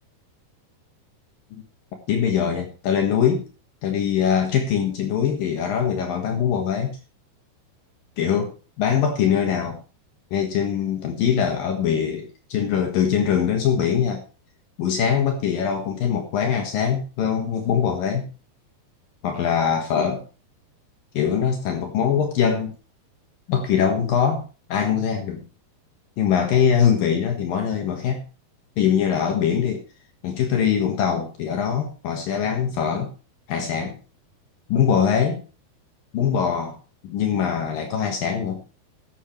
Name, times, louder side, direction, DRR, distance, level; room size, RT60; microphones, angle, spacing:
voice 1, 2.1-3.5 3.8-6.9 8.2-9.8 10.3-14.2 14.8-18.3 19.2-20.2 21.1-22.7 23.5-24.4 24.7-25.4 26.2-28.2 28.8-29.8 30.2-33.1 33.5-34.0 34.7-35.4 36.1-36.8 37.0-38.6, left 8 dB, 65° left, 4 dB, 3.1 m, -22 dB
14.0 x 11.0 x 3.2 m, 0.32 s
omnidirectional pair, 4.5 m